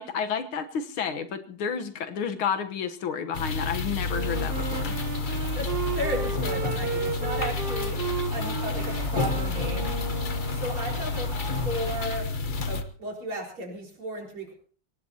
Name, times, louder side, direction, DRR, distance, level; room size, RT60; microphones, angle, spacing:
voice 1, 0.0-5.0, left 7 dB, 80° left, 8 dB, 2.0 m, -31 dB
sound 1, 3.3-12.8, left 4 dB, 40° left, 0.8 m, -30 dB
Wind instrument woodwind instrument, 4.1-10.8, right 6 dB, 45° right, 0.8 m, -34 dB
Fowl, 4.2-12.2, left 1 dB, 15° left, 4.1 m, -42 dB
voice 2, 5.6-8.0 8.3-10.0 10.5-11.4 11.6-12.3 12.7-14.5, right 1 dB, 90° right, 0 dB, 5.4 m, -34 dB
24.0 x 18.0 x 2.9 m, 0.41 s
omnidirectional pair, 2.2 m